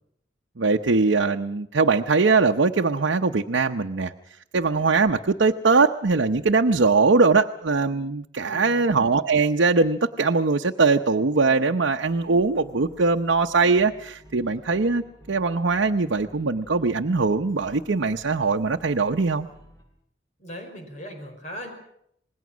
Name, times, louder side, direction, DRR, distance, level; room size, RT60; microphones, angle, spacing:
voice 1, 0.6-4.1 4.5-19.5, right 4 dB, 85° right, 4 dB, 0.8 m, -21 dB
voice 2, 8.4-8.9 20.4-21.7, equal, 40° left, 4 dB, 4.9 m, -39 dB
sound 1, 12.1-19.8, equal, 20° left, 7.2 m, -52 dB
27.0 x 20.0 x 6.2 m, 0.74 s
head